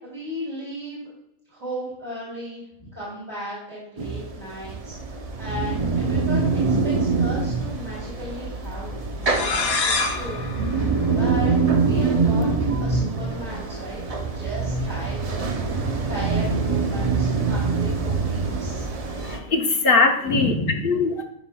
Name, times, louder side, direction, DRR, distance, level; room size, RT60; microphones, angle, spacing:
voice 1, 0.0-1.1 1.5-2.6 2.9-4.9 5.4-6.5 6.8-10.3 11.1-12.5 12.8-14.0 14.3-15.5 16.1-18.9 20.2-20.9, equal, 30° right, -8 dB, 3.1 m, -34 dB
sound 1, 4.0-19.4, right 4 dB, 50° right, 0.4 m, -24 dB
sound 2, 9.2-11.8, left 4 dB, 75° left, 1.4 m, -27 dB
voice 2, 19.1-20.5 20.8-21.2, left 3 dB, 45° left, 3 dB, 0.9 m, -21 dB
12.0 x 5.4 x 2.3 m, 0.80 s
omnidirectional pair, 1.5 m